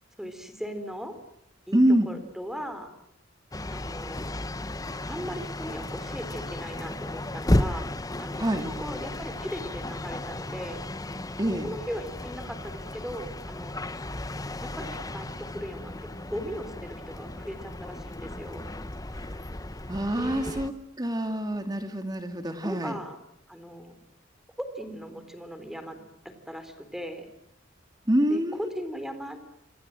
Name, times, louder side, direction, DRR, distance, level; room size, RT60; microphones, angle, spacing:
voice 1, 0.2-1.2 1.7-1.8 2.1-2.9 3.7-4.3 5.1-7.9 8.2-10.8 11.6-13.8 14.6-18.7 20.2-20.7 22.6-23.2 23.5-24.0 24.6-26.0 26.2-27.3 28.3-28.4 28.7-29.4, equal, ahead, 9 dB, 3.8 m, -38 dB
voice 2, 1.7-2.1 8.4-8.6 11.4-11.7 19.9-20.7 21.0-23.0 28.1-28.7, right 1 dB, 20° right, 6 dB, 2.5 m, -25 dB
sound 1, 3.5-20.7, left 1 dB, 20° left, 1.0 m, -34 dB
27.5 x 27.0 x 7.7 m, 0.78 s
head